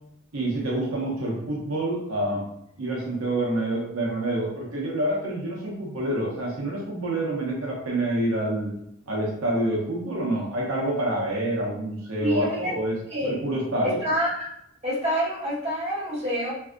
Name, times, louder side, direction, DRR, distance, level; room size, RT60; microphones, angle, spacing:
voice 1, 0.3-2.5 2.8-8.7 9.1-12.9 13.2-14.0, right 1 dB, 80° right, -3 dB, 0.7 m, -27 dB
voice 2, 12.2-12.8 13.1-13.4 13.8-14.5 14.8-16.5, equal, 30° right, -8 dB, 1.4 m, -27 dB
3.3 x 2.6 x 2.5 m, 0.77 s
head